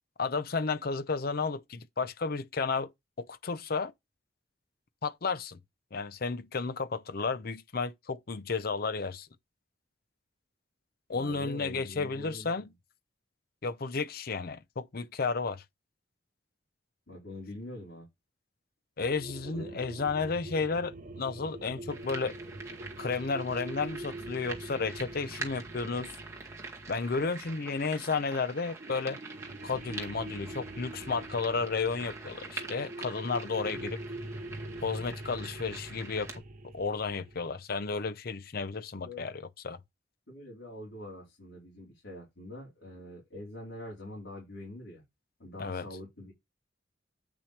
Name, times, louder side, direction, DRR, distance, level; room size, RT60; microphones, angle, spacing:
voice 1, 0.2-2.9 3.2-3.9 5.0-5.6 5.9-9.3 11.1-12.7 13.6-15.6 19.0-22.3 23.0-26.1 26.9-29.2 29.6-34.0 34.8-36.3 36.7-39.8 45.6-45.9, left 4 dB, 55° left, 0.7 m, -32 dB
voice 2, 11.1-12.7 17.1-18.1 19.4-19.8 39.0-39.3 40.3-45.0 45.4-46.3, left 1 dB, 80° left, 4.2 m, -44 dB
sound 1, 19.0-28.1 28.8-37.5, right 1 dB, 45° right, 0.9 m, -44 dB
sound 2, 21.9-36.4, right 4 dB, 15° right, 2.0 m, -45 dB
8.8 x 5.8 x 3.3 m
head